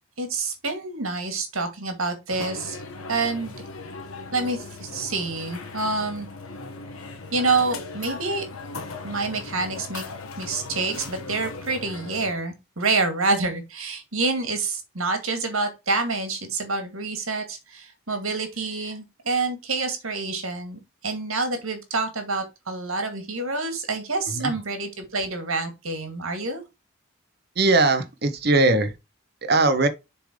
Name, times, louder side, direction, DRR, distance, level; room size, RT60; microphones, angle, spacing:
voice 1, 0.2-2.8 3.1-3.5 4.3-6.3 7.3-8.4 9.0-10.0 10.4-26.6, right 3 dB, 80° right, 2.1 m, -27 dB
sound 1, 2.3-12.3, left 3 dB, 85° left, 1.4 m, -38 dB
voice 2, 27.6-28.9 29.4-29.9, right 2 dB, 50° right, 1.0 m, -20 dB
7.0 x 3.7 x 5.0 m
head